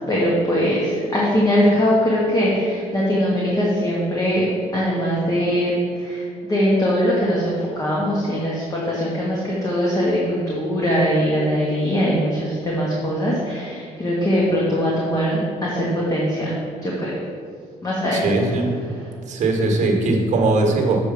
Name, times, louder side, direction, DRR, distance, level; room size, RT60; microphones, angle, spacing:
voice 1, 0.1-4.5 4.7-5.7 6.0-16.5 16.8-17.1 17.8-18.2, equal, 25° left, -5 dB, 1.5 m, -21 dB
voice 2, 18.1-18.8 19.2-21.0, right 2 dB, 55° right, 2 dB, 1.5 m, -20 dB
6.9 x 4.9 x 6.9 m, 2.1 s
cardioid pair, 130°, 14 cm